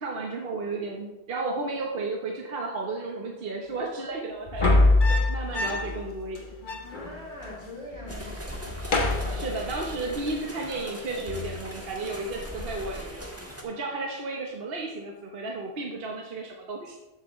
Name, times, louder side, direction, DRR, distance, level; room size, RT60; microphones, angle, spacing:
voice 1, 0.0-4.7 5.1-6.5 9.3-13.1 13.6-17.0, right 3 dB, 60° right, 0 dB, 1.3 m, -33 dB
sound 1, 4.5-6.0 6.3-6.4 6.6-7.6 7.9-8.3 8.6-10.0 11.3-11.6, left 2 dB, 50° left, 1.2 m, -25 dB
voice 2, 6.8-9.5, left 1 dB, 85° right, -4 dB, 3.3 m, -43 dB
sound 2, 8.1-13.6, equal, 15° right, 1.4 m, -39 dB
13.5 x 8.0 x 3.1 m, 1.0 s
omnidirectional pair, 1.1 m